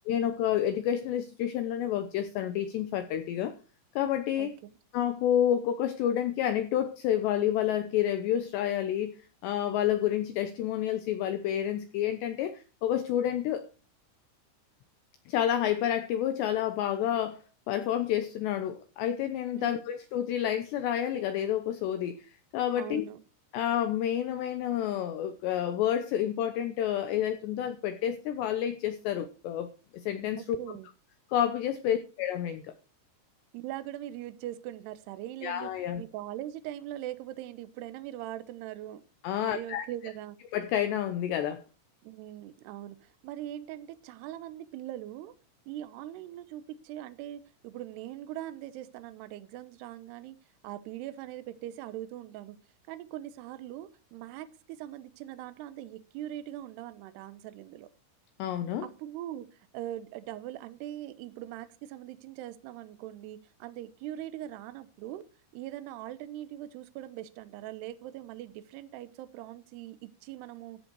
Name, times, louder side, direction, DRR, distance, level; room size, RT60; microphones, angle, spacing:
voice 1, 0.1-3.5 4.0-4.5 4.9-13.7 15.3-23.1 23.5-30.6 31.3-32.7 35.4-36.0 39.2-39.8 40.5-41.6 58.4-58.9, left 10 dB, 80° left, 2.5 m, -29 dB
voice 2, 4.4-4.7 19.6-19.8 22.7-23.2 30.6-30.9 31.9-32.0 33.5-39.0 39.4-40.4 42.0-45.3 45.7-50.4 50.6-52.6 52.9-57.9 59.0-65.2 65.5-70.8, right 13 dB, 80° right, 2.4 m, -41 dB
14.5 x 8.1 x 4.6 m
omnidirectional pair, 6.0 m